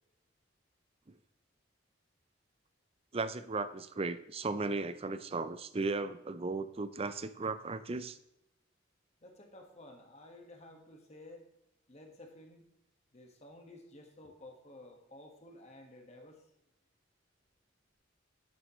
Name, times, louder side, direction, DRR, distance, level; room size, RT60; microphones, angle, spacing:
voice 1, 3.1-8.2, right 3 dB, 30° right, 12 dB, 0.5 m, -36 dB
voice 2, 9.2-11.5 11.9-12.7 13.1-16.5, left 1 dB, 35° left, 2 dB, 1.6 m, -53 dB
10.5 x 7.8 x 3.1 m, 0.83 s
head